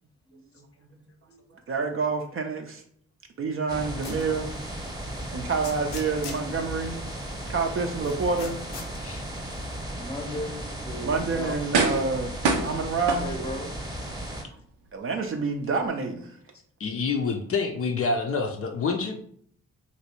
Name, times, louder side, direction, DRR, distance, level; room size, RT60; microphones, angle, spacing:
voice 1, 1.5-2.8 3.4-4.6 5.3-7.0 7.5-8.6 11.0-13.3 14.9-16.4, right 4 dB, 35° right, 4 dB, 0.5 m, -28 dB
sound 1, 3.7-14.4, right 1 dB, 10° right, 0.9 m, -36 dB
sound 2, 4.0-4.3 4.8-4.9 5.6-6.5 8.0-9.0, left 4 dB, 85° left, 0.6 m, -38 dB
voice 2, 10.0-11.6 13.2-13.7, equal, 10° left, 3 dB, 0.7 m, -36 dB
sound 3, 10.8-10.9 11.7-12.2 12.4-13.7 14.2-14.3, right 4 dB, 85° right, 0.5 m, -25 dB
voice 3, 16.8-19.1, left 4 dB, 40° left, 3 dB, 0.5 m, -27 dB
3.0 x 2.6 x 2.8 m, 0.63 s
hypercardioid pair, 45°, 36 cm